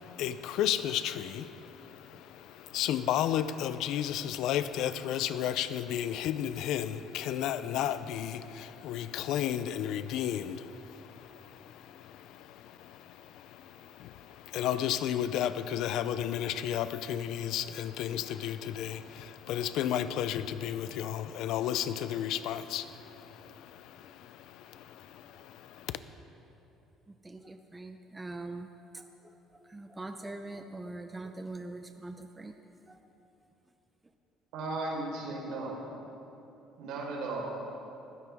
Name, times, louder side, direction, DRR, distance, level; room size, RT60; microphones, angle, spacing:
voice 1, 0.0-26.0, left 10 dB, 70° left, 13 dB, 0.6 m, -33 dB
voice 2, 27.1-32.6 32.8-33.0, right 2 dB, 15° right, 6 dB, 0.6 m, -43 dB
voice 3, 34.5-35.7 36.8-37.5, right 2 dB, 75° right, -2 dB, 4.5 m, -35 dB
20.0 x 16.0 x 3.6 m, 2.9 s
cardioid pair, 140°, 0 cm